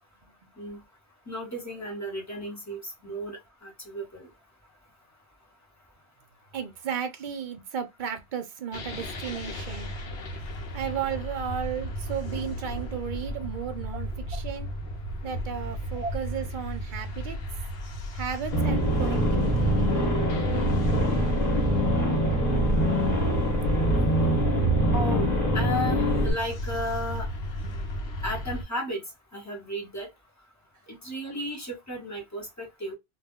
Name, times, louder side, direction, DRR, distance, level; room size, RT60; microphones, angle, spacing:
voice 1, 1.3-4.3 14.3-14.4 16.0-16.1 24.9-27.3 28.2-29.0 29.3-30.1 30.9-32.9, equal, 15° left, 0.8 m, -34 dB
voice 2, 6.5-9.9 10.7-14.7 15.2-17.4 18.1-19.9 21.6-22.4 22.8-22.9 23.6-23.7 24.3-24.4, right 8 dB, 55° right, 0.6 m, -35 dB
sound 1, 8.7-28.6, equal, 70° left, 0.9 m, -34 dB
sound 2, 18.5-26.3, right 1 dB, 40° left, 1.1 m, -24 dB
2.3 x 2.1 x 3.5 m
omnidirectional pair, 1.1 m